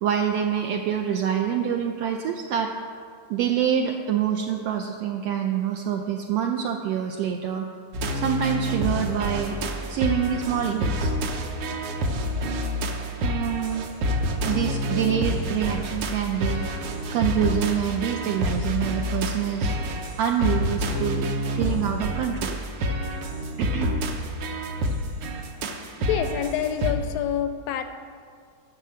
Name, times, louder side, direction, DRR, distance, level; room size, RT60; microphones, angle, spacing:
voice 1, 0.0-2.7 3.3-7.7 8.1-9.6 9.9-11.1 13.2-13.9 14.4-19.7 20.2-22.6 23.6-23.9, right 8 dB, 90° right, 3 dB, 1.4 m, -26 dB
sound 1, 7.9-26.9, equal, 65° right, 1.4 m, -28 dB
voice 2, 26.0-27.8, left 9 dB, 85° left, 9 dB, 1.5 m, -27 dB
11.0 x 6.3 x 7.7 m, 2.1 s
omnidirectional pair, 3.5 m